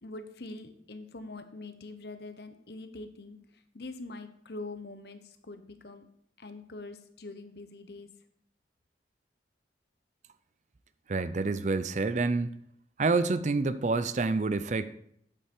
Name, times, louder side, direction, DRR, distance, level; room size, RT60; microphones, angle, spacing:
voice 1, 0.0-6.1 6.4-8.1, left 2 dB, 65° left, 9 dB, 1.0 m, -44 dB
voice 2, 11.1-12.5 13.0-14.9, right 3 dB, 40° right, 13 dB, 0.4 m, -28 dB
8.6 x 8.2 x 4.5 m, 0.69 s
head